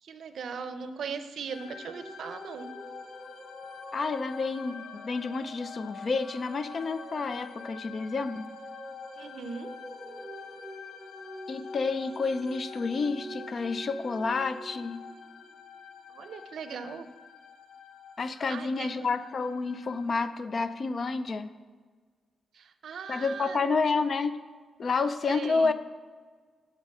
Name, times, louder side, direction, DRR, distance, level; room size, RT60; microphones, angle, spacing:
voice 1, 0.0-2.7 9.2-9.7 16.1-17.1 18.5-19.1 22.5-23.9 25.3-25.7, right 5 dB, 60° right, 10 dB, 0.6 m, -39 dB
sound 1, 1.5-20.3, left 7 dB, 75° left, 0.6 m, -47 dB
sound 2, 1.6-16.0, right 1 dB, ahead, 0.8 m, -47 dB
voice 2, 3.9-8.5 11.5-15.0 18.2-21.5 23.1-24.4 24.8-25.7, left 4 dB, 35° left, 12 dB, 0.4 m, -29 dB
8.3 x 6.1 x 5.4 m, 1.5 s
wide cardioid pair, 175°, 0 cm